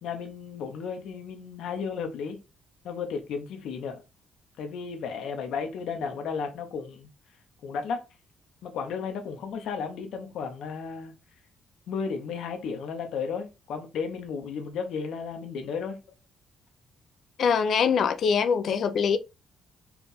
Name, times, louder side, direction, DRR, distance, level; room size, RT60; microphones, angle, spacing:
voice 1, 0.0-2.4 2.8-4.0 4.6-7.1 7.6-8.0 8.6-11.1 11.9-16.0, left 6 dB, 80° left, 1.0 m, -34 dB
voice 2, 17.4-19.2, left 6 dB, 65° left, 0.6 m, -23 dB
4.4 x 2.5 x 4.0 m
cardioid pair, 90°, 0 cm